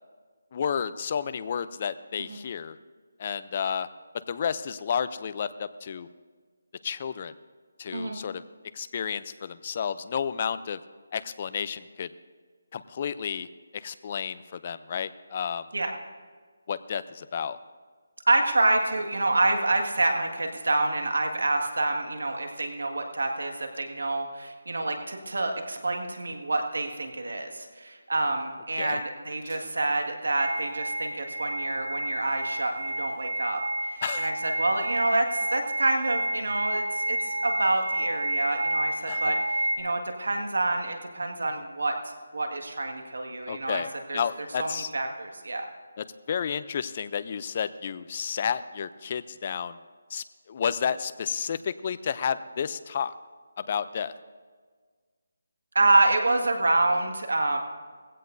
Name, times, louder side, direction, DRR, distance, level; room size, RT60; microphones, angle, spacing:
voice 1, 0.5-2.8 3.2-3.9 4.3-6.1 6.8-7.3 7.8-8.4 8.7-10.8 11.1-12.1 12.7-13.5 13.8-15.7 16.7-17.6 28.8-29.0 34.0-34.3 39.1-39.4 43.5-43.9 44.1-44.9 46.0-49.8 50.1-53.1 53.6-54.1, left 7 dB, 30° left, 14 dB, 0.4 m, -31 dB
voice 2, 18.3-33.6 33.9-41.9 42.3-43.8 44.1-44.2 44.6-45.7 55.7-57.6, right 2 dB, 85° right, 4 dB, 1.8 m, -27 dB
sound 1, 30.4-39.8, right 1 dB, 60° right, 2.3 m, -30 dB
19.5 x 16.0 x 2.6 m, 1.5 s
hypercardioid pair, 170°, 0 cm